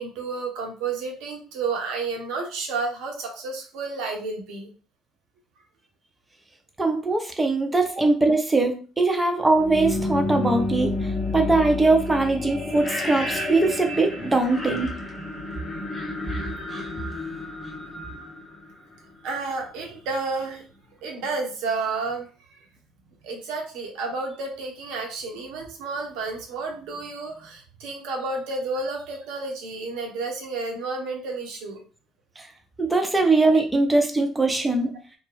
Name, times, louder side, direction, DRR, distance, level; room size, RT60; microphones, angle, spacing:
voice 1, 0.0-4.7 19.2-20.6 21.0-22.3 23.2-31.8 33.4-33.6, right 3 dB, 70° right, 2 dB, 0.8 m, -31 dB
voice 2, 6.8-15.0 32.4-32.5 32.8-34.9, right 3 dB, 15° right, 3 dB, 0.8 m, -21 dB
sound 1, 9.5-19.3, left 2 dB, 30° left, 0.8 m, -30 dB
2.5 x 2.1 x 3.4 m, 0.37 s
hypercardioid pair, 55°, 0 cm